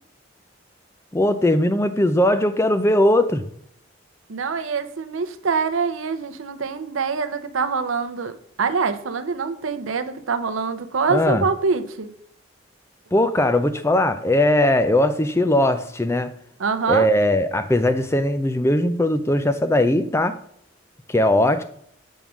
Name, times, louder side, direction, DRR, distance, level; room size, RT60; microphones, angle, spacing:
voice 1, 1.1-3.4 11.1-11.4 13.1-16.3 16.9-20.4 21.1-21.6, left 1 dB, 15° left, 10 dB, 0.4 m, -19 dB
voice 2, 4.3-12.1 16.6-17.1, right 5 dB, 85° right, 11 dB, 0.6 m, -25 dB
7.1 x 3.6 x 6.1 m, 0.67 s
head